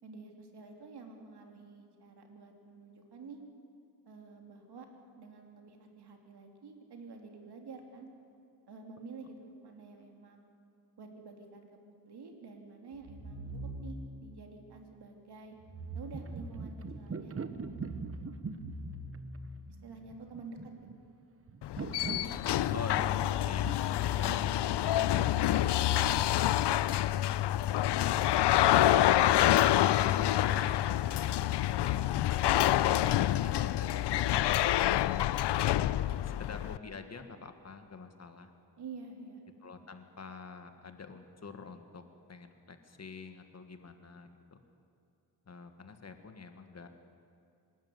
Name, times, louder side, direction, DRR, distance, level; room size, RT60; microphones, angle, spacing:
voice 1, 0.0-3.4 4.0-4.9 5.2-8.1 8.7-10.5 11.0-15.5 15.9-17.8 19.8-20.7 24.2-26.8 27.1-27.5 38.8-39.4 39.7-39.9, right 4 dB, 65° right, 3 dB, 3.3 m, -49 dB
sound 1, 12.9-14.2 15.6-17.0 17.5-20.0, right 1 dB, 85° right, 6.5 m, -44 dB
sound 2, 15.8-25.5, right 5 dB, 30° right, 1.0 m, -43 dB
sound 3, 21.6-36.8, left 13 dB, 70° left, 0.6 m, -27 dB
voice 2, 22.1-25.5 28.7-29.9 30.4-30.9 31.3-32.5 33.0-34.7 36.1-38.5 39.6-42.0 42.3-44.6 45.5-46.9, left 4 dB, 35° left, 7 dB, 1.7 m, -46 dB
25.0 x 13.0 x 9.6 m, 2.6 s
cardioid pair, 100°, 43 cm